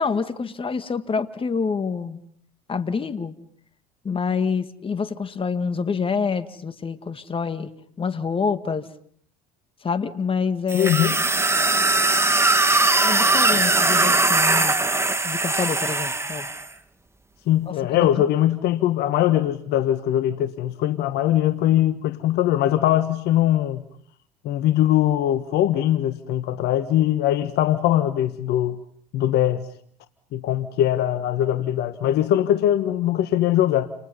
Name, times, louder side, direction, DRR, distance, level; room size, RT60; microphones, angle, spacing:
voice 1, 0.0-2.2 2.7-3.4 4.0-7.7 8.0-8.9 9.8-10.9 13.0-14.8 15.2-16.5 17.7-18.2, left 5 dB, 30° left, 2.3 m, -27 dB
voice 2, 10.7-11.2 17.5-23.8 24.4-28.8 29.1-29.6 30.3-33.9, left 12 dB, 65° left, 1.4 m, -21 dB
sound 1, 10.7-16.6, right 2 dB, 15° right, 2.7 m, -20 dB
29.5 x 29.0 x 5.5 m
hypercardioid pair, 75°, 19 cm